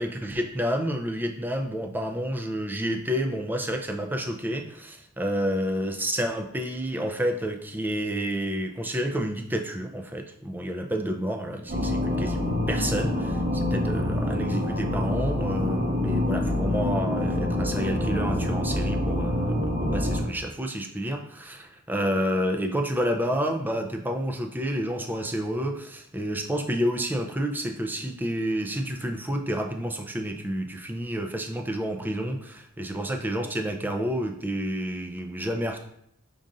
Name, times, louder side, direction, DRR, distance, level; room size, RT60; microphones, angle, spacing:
voice 1, 0.0-35.8, equal, 10° right, 4 dB, 0.4 m, -29 dB
sound 1, 11.7-20.2, left 1 dB, 40° right, 1.3 m, -26 dB
5.3 x 2.5 x 3.8 m, 0.73 s
head